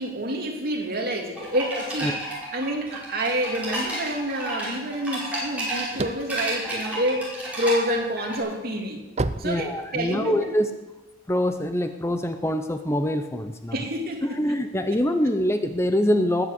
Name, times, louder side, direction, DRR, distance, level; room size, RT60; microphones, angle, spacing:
voice 1, 0.0-2.2 2.5-7.3 7.6-9.0 9.4-10.5 13.7-14.4 14.8-14.9, equal, 50° right, 2 dB, 2.8 m, -28 dB
sound 1, 1.4-8.4, right 1 dB, 5° right, 6.1 m, -32 dB
sound 2, 5.4-7.6 8.1-10.4, right 2 dB, 35° right, 0.6 m, -31 dB
voice 2, 9.4-10.7 11.3-13.8 14.2-16.5, equal, 15° left, 8 dB, 0.7 m, -24 dB
20.0 x 8.0 x 8.1 m, 1.1 s
head